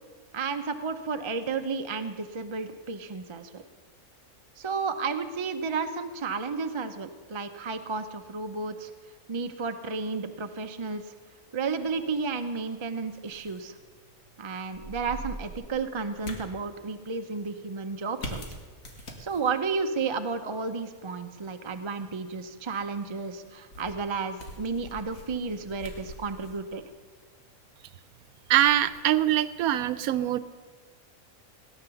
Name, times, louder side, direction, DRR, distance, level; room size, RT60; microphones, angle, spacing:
voice 1, 0.3-3.6 4.6-8.9 9.3-11.0 11.5-13.8 14.4-18.4 19.2-26.8, right 4 dB, 35° right, 7 dB, 0.4 m, -32 dB
sound 1, 11.7-29.7, equal, 70° left, 2.4 m, -46 dB
voice 2, 28.5-30.4, right 12 dB, 85° right, 15 dB, 1.1 m, -23 dB
17.5 x 10.0 x 6.9 m, 1.5 s
omnidirectional pair, 1.5 m